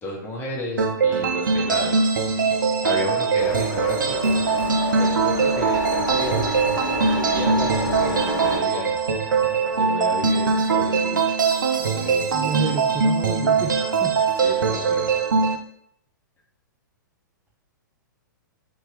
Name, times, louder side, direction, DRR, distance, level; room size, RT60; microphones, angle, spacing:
voice 1, 0.0-2.1 2.8-4.7 5.0-9.0 9.7-11.3 11.7-12.5 14.4-15.1, left 1 dB, 20° left, -2 dB, 1.0 m, -32 dB
sound 1, 0.8-15.6, right 5 dB, 75° right, 0.5 m, -22 dB
sound 2, 3.4-8.6, left 1 dB, 70° left, 1.1 m, -29 dB
voice 2, 12.3-14.1, right 7 dB, 15° right, 1 dB, 0.4 m, -29 dB
3.5 x 2.8 x 3.2 m, 0.68 s
figure-of-eight pair, 110°, 11 cm